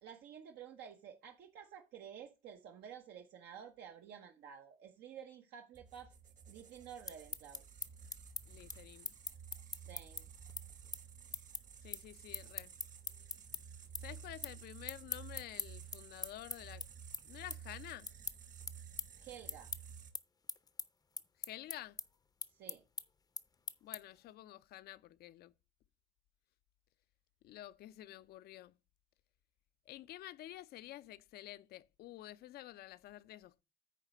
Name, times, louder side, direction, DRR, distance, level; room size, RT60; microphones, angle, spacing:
voice 1, 0.0-6.1 6.5-7.6 9.9-10.3 19.2-19.7 22.6-22.8, right 8 dB, 75° right, 1.0 m, -52 dB
sound 1, 5.7-20.1, right 7 dB, 50° right, 1.3 m, -53 dB
sound 2, 6.9-13.6 13.9-14.6 14.8-24.2, left 5 dB, 20° left, 0.6 m, -43 dB
voice 2, 8.5-9.1 11.8-12.7 14.0-16.9 17.2-18.1 21.4-22.0 23.8-25.5 27.4-28.7 29.9-33.6, left 14 dB, 70° left, 0.5 m, -50 dB
9.2 x 3.2 x 6.4 m
cardioid pair, 110°, 17 cm